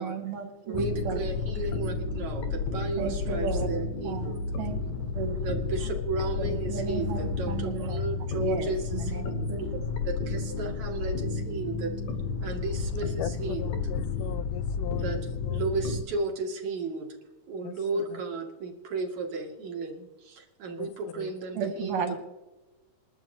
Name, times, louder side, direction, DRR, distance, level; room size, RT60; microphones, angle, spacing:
voice 1, 0.0-1.2 3.0-3.7 4.0-5.5 6.5-9.8 21.5-22.2, right 6 dB, 80° right, 3.4 m, -34 dB
sound 1, 0.7-16.0, left 4 dB, 60° left, 2.8 m, -31 dB
voice 2, 0.7-4.4 5.4-9.1 10.1-11.9 12.4-13.8 15.0-15.2 15.5-17.1 17.5-22.2, right 3 dB, 60° right, 3.4 m, -34 dB
voice 3, 13.6-15.6 17.6-18.2 20.8-20.9 21.2-21.3, left 13 dB, 80° left, 2.1 m, -40 dB
28.0 x 12.0 x 2.8 m
omnidirectional pair, 3.8 m